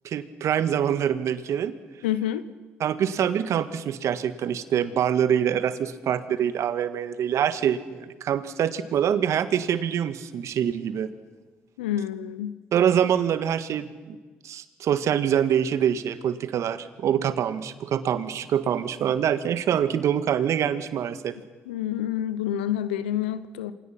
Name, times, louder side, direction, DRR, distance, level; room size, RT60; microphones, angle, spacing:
voice 1, 0.0-1.7 2.8-11.1 12.7-14.2 14.4-21.4, right 9 dB, 65° right, 12 dB, 1.7 m, -25 dB
voice 2, 2.0-2.4 11.8-12.5 21.7-23.7, left 11 dB, 90° left, 14 dB, 0.9 m, -28 dB
28.0 x 25.5 x 6.0 m, 1.3 s
hypercardioid pair, 50°, 6 cm